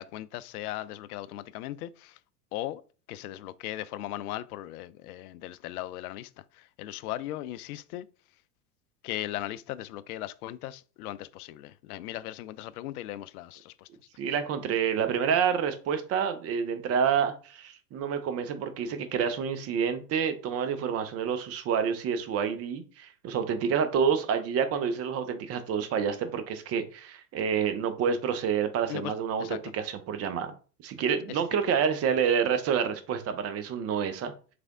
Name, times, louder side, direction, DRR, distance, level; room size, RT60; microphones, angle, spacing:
voice 1, 0.0-2.2 2.5-2.8 3.1-8.1 9.0-13.9 28.9-29.1 29.4-29.7 31.3-31.6, left 14 dB, 65° left, 0.5 m, -38 dB
voice 2, 14.2-30.5 30.8-34.3, right 7 dB, 30° right, 0.7 m, -28 dB
3.4 x 3.4 x 3.7 m
hypercardioid pair, 95°, 49 cm